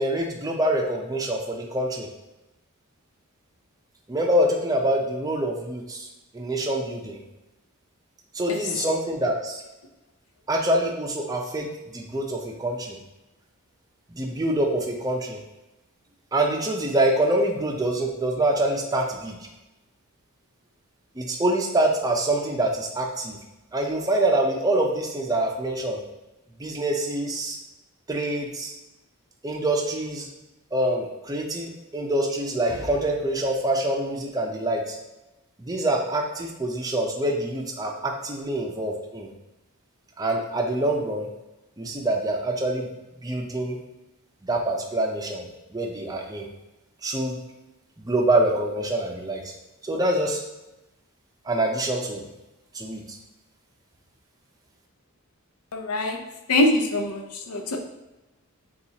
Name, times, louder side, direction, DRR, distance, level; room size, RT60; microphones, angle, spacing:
voice 1, 0.0-2.1 4.1-6.1 6.3-7.2 8.3-9.6 10.5-11.7 11.9-13.0 14.1-15.4 16.3-19.4 21.2-23.4 23.7-26.0 26.6-27.6 28.1-28.7 29.4-30.3 30.7-35.0 35.6-39.3 40.2-41.3 41.8-42.9 43.2-43.8 44.4-46.5 47.0-47.4 48.0-49.5 49.8-50.4 51.5-52.2 52.7-53.2, right 1 dB, 15° right, 1 dB, 0.5 m, -25 dB
voice 2, 55.7-56.2 56.5-57.2 57.5-57.8, left 1 dB, 85° left, 4 dB, 0.6 m, -23 dB
6.9 x 2.4 x 2.8 m, 0.99 s
head